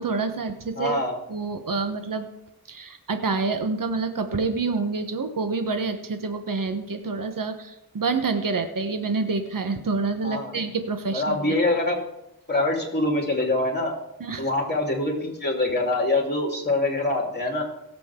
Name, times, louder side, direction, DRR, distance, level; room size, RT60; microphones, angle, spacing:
voice 1, 0.0-1.0 1.3-2.3 2.7-11.5 14.2-14.5, right 4 dB, 65° right, 7 dB, 1.2 m, -27 dB
voice 2, 0.8-1.1 10.2-10.6 11.1-12.0 12.5-13.9 14.4-17.6, left 2 dB, 30° left, 0 dB, 3.6 m, -24 dB
17.5 x 7.7 x 3.7 m, 0.83 s
wide cardioid pair, 60°, 36 cm